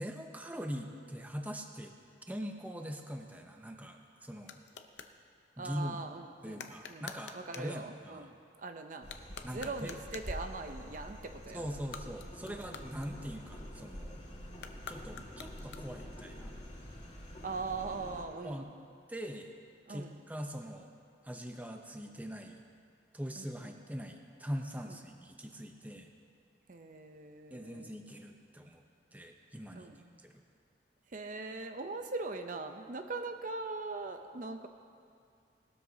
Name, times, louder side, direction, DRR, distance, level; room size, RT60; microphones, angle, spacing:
voice 1, 0.0-1.9 2.3-4.6 5.6-6.0 6.4-8.3 9.4-10.0 11.5-14.2 14.9-16.5 18.4-18.7 19.1-19.5 19.9-20.9 21.2-22.6 23.1-26.1 27.5-28.8 29.1-29.9 30.2-30.3, equal, 10° right, 3 dB, 0.6 m, -42 dB
sound 1, 4.0-5.2 6.5-7.8 9.0-10.4 11.7-13.6 14.5-16.1, left 6 dB, 80° left, 0.7 m, -49 dB
voice 2, 5.6-9.1 9.5-11.8 12.4-12.9 17.4-18.7 19.9-20.2 23.4-23.8 24.9-25.0 26.7-27.9 29.7-30.1 31.1-34.7, right 3 dB, 45° right, 6 dB, 0.6 m, -41 dB
sound 2, 9.0-18.2, equal, 40° left, 2.4 m, -47 dB
19.0 x 13.0 x 2.8 m, 2.3 s
head